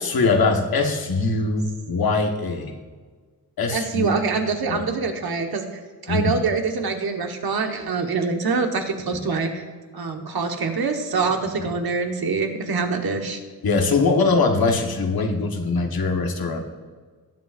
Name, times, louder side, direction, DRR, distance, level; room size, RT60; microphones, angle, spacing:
voice 1, 0.0-2.8 3.6-4.1 4.7-4.8 6.1-6.3 9.1-9.2 11.6-11.7 13.6-16.6, left 3 dB, 75° left, 4 dB, 1.3 m, -22 dB
voice 2, 3.7-9.6 9.9-13.4, right 4 dB, 85° right, 4 dB, 1.3 m, -25 dB
20.0 x 7.9 x 2.5 m, 1.5 s
wide cardioid pair, 95°, 36 cm